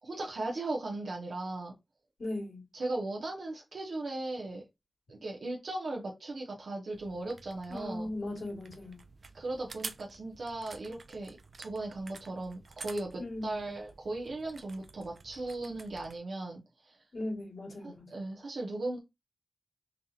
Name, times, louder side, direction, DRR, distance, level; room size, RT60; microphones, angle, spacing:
voice 1, 0.0-1.7 2.7-4.6 5.1-8.1 9.3-17.0 17.8-19.0, right 2 dB, 85° right, 0.8 m, -37 dB
voice 2, 2.2-2.7 7.7-9.0 13.2-13.8 17.1-18.1, left 1 dB, 80° left, 2.3 m, -38 dB
sound 1, 6.9-16.2, right 4 dB, 65° right, 0.4 m, -50 dB
5.4 x 2.4 x 2.7 m
wide cardioid pair, 90°, 0 cm